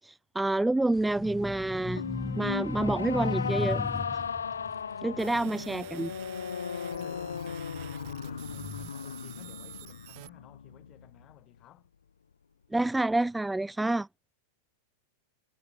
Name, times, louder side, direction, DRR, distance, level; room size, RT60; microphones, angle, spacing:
voice 1, 0.0-2.0 2.4-3.8 5.0-6.1 12.7-14.1, right 2 dB, 5° right, 0.4 m, -28 dB
sound 1, 0.9-6.5 7.0-8.9, left 3 dB, 10° left, 0.8 m, -37 dB
sound 2, 1.9-11.3, left 6 dB, 70° left, 0.8 m, -36 dB
sound 3, 5.2-10.3, right 33 dB, 45° right, 2.9 m, -50 dB
voice 2, 5.3-6.3 6.9-11.9, left 13 dB, 35° left, 7.3 m, -54 dB
figure-of-eight pair, 90°, 0 cm